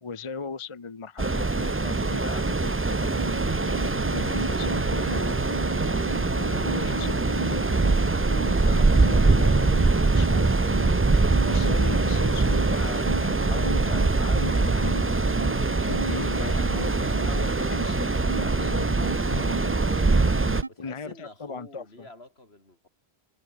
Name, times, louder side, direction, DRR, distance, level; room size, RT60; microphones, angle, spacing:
voice 1, 0.0-3.1 4.1-5.3 6.6-7.8 8.6-10.6 11.4-19.5 20.8-22.1, left 4 dB, 30° left, 0.9 m, -38 dB
sound 1, 1.2-20.6, right 3 dB, 20° right, 0.3 m, -23 dB
sound 2, 3.0-20.7, right 3 dB, 40° right, 1.8 m, -35 dB
sound 3, 4.5-4.8 5.1-5.4 5.8-6.0 6.4-7.3 7.6-8.0 8.3-8.6 8.9-9.5, equal, 10° left, 5.1 m, -39 dB
voice 2, 20.7-22.9, left 2 dB, 75° left, 5.6 m, -48 dB
omnidirectional pair, 1.1 m